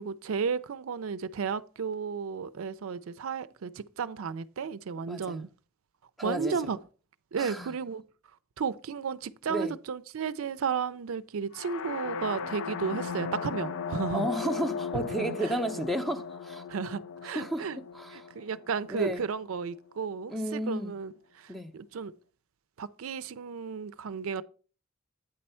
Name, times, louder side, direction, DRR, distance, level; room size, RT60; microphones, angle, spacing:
voice 1, 0.0-5.5 6.2-6.8 7.3-8.0 8.6-14.3 14.9-15.6 16.7-17.8 18.1-22.1 22.8-24.4, right 6 dB, 75° right, 0.4 m, -33 dB
voice 2, 5.1-5.4 6.2-6.6 7.4-7.7 9.5-9.7 14.1-16.6 17.3-17.6 17.9-18.3 18.9-19.3 20.3-20.9 21.5-21.7, right 1 dB, ahead, 0.6 m, -32 dB
sound 1, 11.5-19.4, left 6 dB, 75° left, 0.5 m, -37 dB
8.8 x 4.3 x 5.5 m
head